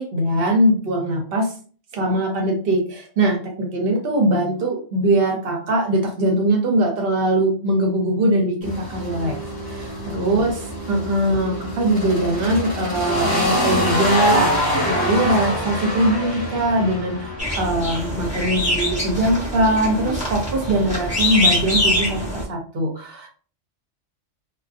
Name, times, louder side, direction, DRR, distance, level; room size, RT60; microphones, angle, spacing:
voice 1, 0.0-1.5 1.9-9.4 9.7-23.3, right 1 dB, 55° right, 2 dB, 0.8 m, -21 dB
sound 1, 8.6-18.3, left 1 dB, 20° left, 1.0 m, -25 dB
sound 2, 17.4-22.4, left 1 dB, 10° right, 0.7 m, -24 dB
2.4 x 2.2 x 2.4 m, 0.42 s
omnidirectional pair, 1.3 m